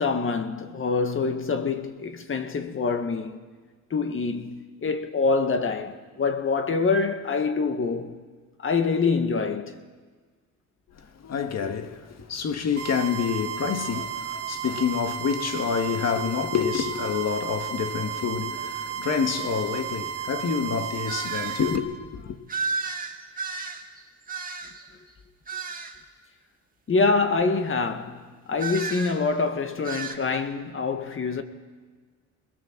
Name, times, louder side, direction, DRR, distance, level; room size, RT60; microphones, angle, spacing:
voice 1, 0.0-3.4 3.9-8.2 8.6-9.8 26.9-31.4, left 4 dB, 45° left, 1.8 m, -25 dB
voice 2, 11.2-22.4, left 6 dB, 60° left, 2.0 m, -28 dB
sound 1, 12.8-21.8, right 9 dB, 55° right, 2.6 m, -33 dB
sound 2, 21.1-21.6 22.5-24.9 25.5-26.0 28.6-29.2 29.8-30.2, right 4 dB, 30° right, 2.2 m, -33 dB
22.5 x 20.5 x 7.5 m
cardioid pair, 90°, 30 cm